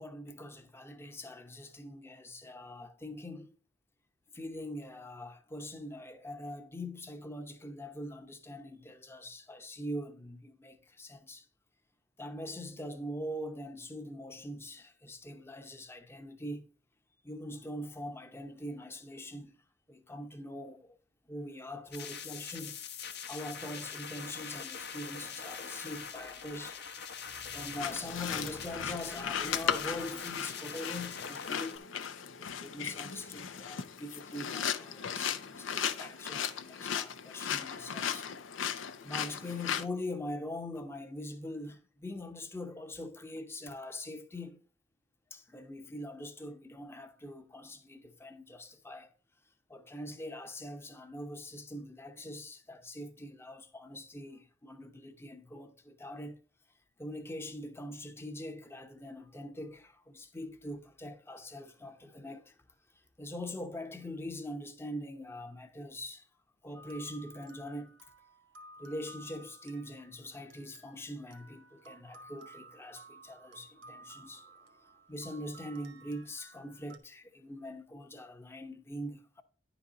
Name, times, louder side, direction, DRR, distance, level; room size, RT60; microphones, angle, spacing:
voice 1, 0.0-3.5 4.3-11.5 12.2-16.7 17.2-19.6 19.9-21.0 21.3-22.8 23.2-31.9 32.4-38.3 38.6-44.6 45.3-49.1 49.7-56.4 57.0-62.6 62.9-66.3 66.6-67.9 68.8-79.4, left 1 dB, 15° left, 0.7 m, -43 dB
sound 1, 21.9-31.8, left 6 dB, 55° left, 0.9 m, -43 dB
sound 2, 27.8-39.9, left 8 dB, 85° left, 0.6 m, -36 dB
sound 3, 66.7-77.0, right 2 dB, 75° right, 1.4 m, -55 dB
10.5 x 4.2 x 5.0 m
head